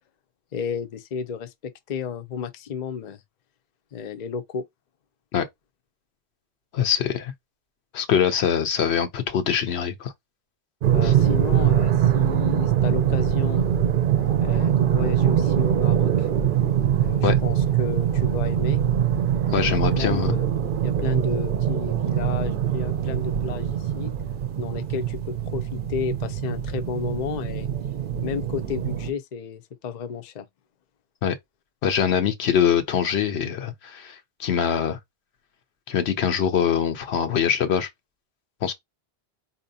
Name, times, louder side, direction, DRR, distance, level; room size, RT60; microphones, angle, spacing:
voice 1, 0.5-3.2 3.9-4.7 10.9-13.8 14.4-16.3 17.0-18.8 19.5-20.5 20.8-24.1 24.6-27.7 28.2-30.5, left 6 dB, 50° left, 0.6 m, -32 dB
voice 2, 6.7-7.3 7.9-10.1 11.0-11.1 17.2-17.4 19.5-20.4 31.2-31.4 31.8-35.0 35.9-37.9 38.6-38.7, left 8 dB, 80° left, 1.0 m, -23 dB
sound 1, 10.8-29.1, right 10 dB, 60° right, 0.7 m, -23 dB
4.2 x 2.7 x 2.7 m
omnidirectional pair, 1.1 m